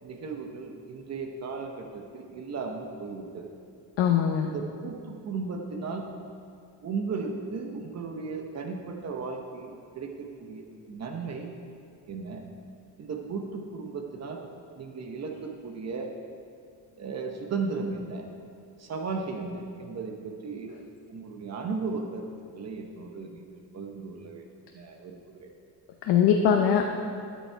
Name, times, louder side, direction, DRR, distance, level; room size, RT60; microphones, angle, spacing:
voice 1, 0.0-3.5 4.4-6.1 6.8-10.6 10.9-11.5 12.1-12.4 13.0-14.4 14.7-16.1 17.0-18.3 18.8-20.8 21.1-22.3 22.6-24.4 24.7-25.5, right 4 dB, 40° right, 2 dB, 0.9 m, -35 dB
voice 2, 4.0-4.5 26.1-26.8, left 8 dB, 80° left, 2 dB, 0.9 m, -21 dB
12.5 x 8.4 x 4.6 m, 2.4 s
cardioid pair, 175°, 40 cm